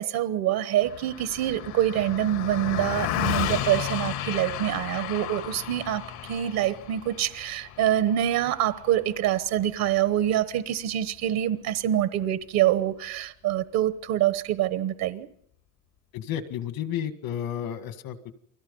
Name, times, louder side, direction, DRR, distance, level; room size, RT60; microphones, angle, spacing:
voice 1, 0.0-15.3, right 12 dB, 70° right, 1.2 m, -26 dB
Car passing by, 0.8-10.4, left 10 dB, 85° left, 3.3 m, -33 dB
voice 2, 16.1-18.3, left 10 dB, 65° left, 2.0 m, -32 dB
29.5 x 21.5 x 5.4 m
cardioid pair, 145°, 37 cm